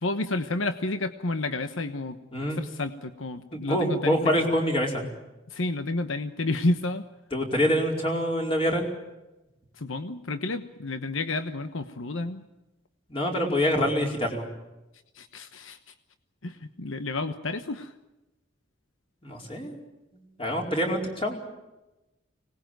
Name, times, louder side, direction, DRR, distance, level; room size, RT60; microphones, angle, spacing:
voice 1, 0.0-4.4 5.5-7.0 9.8-12.4 15.1-15.9 16.4-17.9, left 2 dB, 90° left, 9 dB, 1.1 m, -30 dB
voice 2, 3.5-5.1 7.3-8.9 13.1-14.5 19.2-19.8 20.4-21.4, equal, 25° left, 1 dB, 4.7 m, -26 dB
25.0 x 19.5 x 9.2 m, 1.0 s
head